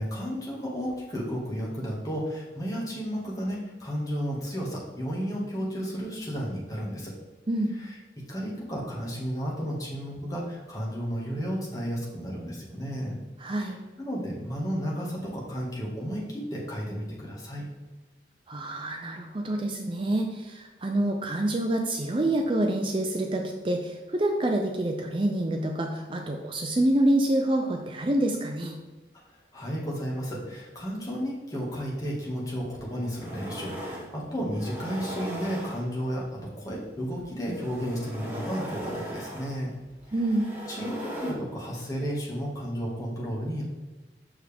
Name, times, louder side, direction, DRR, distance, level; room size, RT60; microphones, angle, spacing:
voice 1, 0.0-7.1 7.8-8.0 8.3-13.1 13.5-17.6 29.2-36.3 36.6-39.7 40.7-43.6, equal, 20° left, -4 dB, 1.8 m, -33 dB
voice 2, 13.4-13.8 18.5-28.8 40.1-40.4, right 1 dB, 30° right, 3 dB, 0.5 m, -27 dB
sound 1, 32.5-32.6 33.0-34.1 34.5-36.2 37.3-41.3, equal, 10° right, 1.3 m, -38 dB
7.1 x 6.2 x 3.5 m, 1.2 s
head